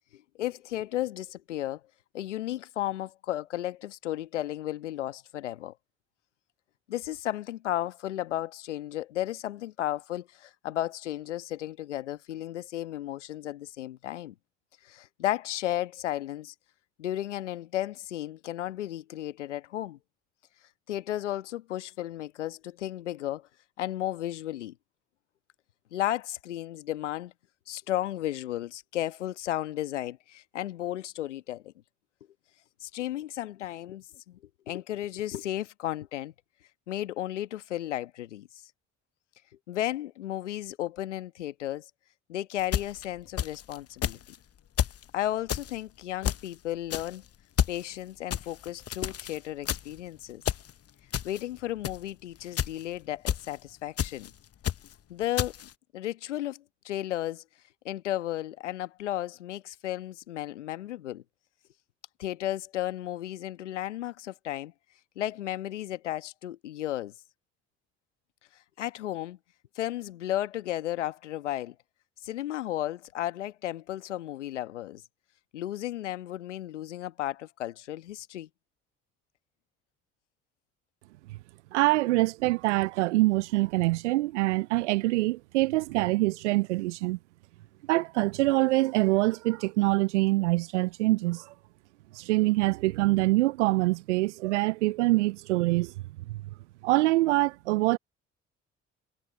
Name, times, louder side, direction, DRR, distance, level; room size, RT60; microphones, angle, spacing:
voice 1, 0.1-1.8 2.1-5.7 6.9-14.3 14.8-16.5 17.0-20.0 20.9-23.5 23.8-24.7 25.9-27.3 27.7-31.7 32.8-34.4 34.7-36.3 36.9-38.5 39.7-41.8 42.3-44.2 45.1-47.2 47.7-50.4 51.2-54.3 55.1-55.5 55.9-57.4 57.8-61.2 62.2-64.7 65.2-67.1 68.8-69.4 69.7-71.7 72.2-75.0 75.5-78.5, left 13 dB, 85° left, 1.3 m, -34 dB
sound 1, 42.6-43.8 44.0-44.4 44.8-45.0 45.5-45.7 46.2-46.5 46.9-47.2 47.6-47.8 48.3-49.4 49.6-50.0 50.4-50.7 51.1-51.4 51.8-52.1 52.5-52.8 53.3-53.5 54.0-54.3 54.6-54.9 55.4-55.7, left 10 dB, 45° left, 1.0 m, -30 dB
voice 2, 81.7-87.2 87.9-91.5 92.1-95.9 96.3-96.4 96.8-98.0, right 20 dB, 85° right, 0.5 m, -25 dB
hypercardioid pair, 45°, 35 cm